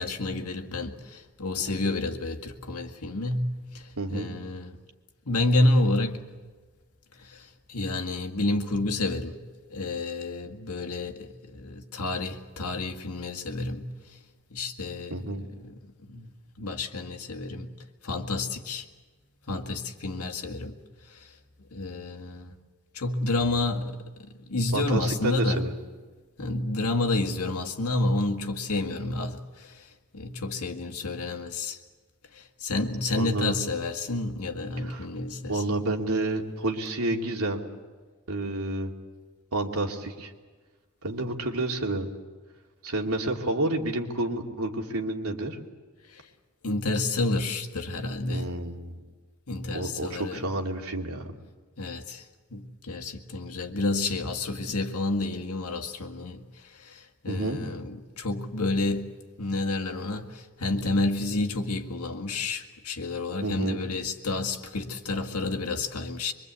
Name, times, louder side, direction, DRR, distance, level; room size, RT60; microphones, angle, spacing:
voice 1, 0.0-3.8 4.1-4.7 5.3-6.2 7.2-9.4 9.7-13.9 14.5-15.7 16.0-16.3 16.6-17.7 18.0-18.9 19.5-20.7 21.7-22.5 22.9-25.6 26.4-29.7 30.1-31.8 32.3-35.8 46.1-46.2 46.6-48.5 49.5-50.4 51.8-52.2 52.5-56.4 56.8-59.1 59.4-66.3, left 2 dB, 90° left, 2.0 m, -29 dB
voice 2, 4.0-4.3 15.1-15.4 24.7-25.7 33.2-33.6 34.8-35.1 35.5-37.6 38.3-38.9 39.5-40.3 41.0-42.1 42.8-45.6 48.3-49.0 49.7-51.3 57.3-57.6 63.4-63.8, right 2 dB, 85° right, 2.6 m, -29 dB
24.5 x 23.5 x 8.4 m
head